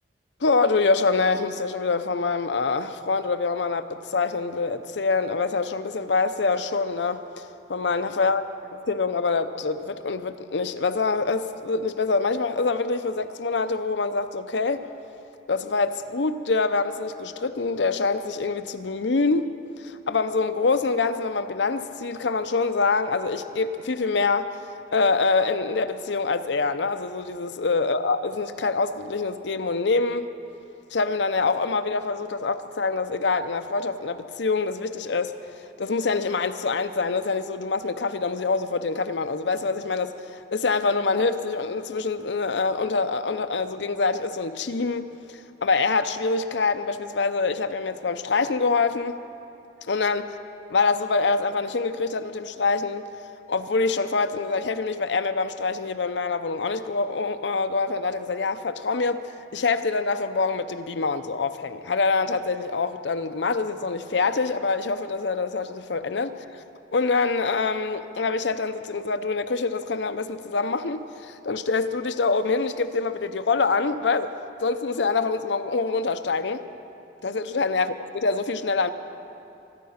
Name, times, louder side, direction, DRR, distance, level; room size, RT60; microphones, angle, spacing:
voice 1, 0.4-8.4 8.9-14.8 15.5-19.5 19.8-24.6 24.9-30.3 30.9-35.3 35.8-49.2 49.9-50.4 50.7-53.1 53.5-66.6 66.9-74.3 74.6-76.6 77.2-78.9, left 4 dB, 80° left, 10 dB, 0.7 m, -25 dB
24.0 x 9.6 x 5.7 m, 2.7 s
head